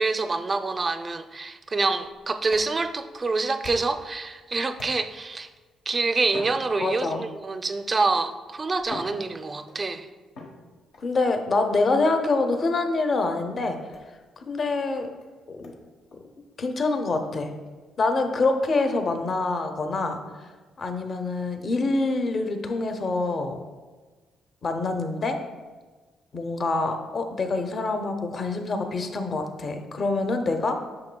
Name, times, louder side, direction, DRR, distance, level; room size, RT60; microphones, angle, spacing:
voice 1, 0.0-5.5 5.9-10.1, right 3 dB, 30° right, 9 dB, 0.4 m, -26 dB
sound 1, 2.0-4.1 4.7-5.3 6.2-7.3 8.2-8.3 8.8-9.9 10.3-11.1 12.5-12.8 13.9-14.1 14.7-14.8 15.2-15.3 15.6-15.8 16.1-16.2 16.6-16.7 17.1-17.2 17.6-17.7 18.6-18.8, left 3 dB, 85° left, 1.2 m, -44 dB
voice 2, 6.8-7.3 11.0-13.8 14.4-15.1 15.5-15.7 16.6-17.5 18.0-20.2 20.8-23.6 24.6-25.4 26.3-30.8, left 3 dB, 45° left, 6 dB, 0.7 m, -25 dB
8.7 x 6.0 x 2.2 m, 1.3 s
cardioid pair, 90°, 0 cm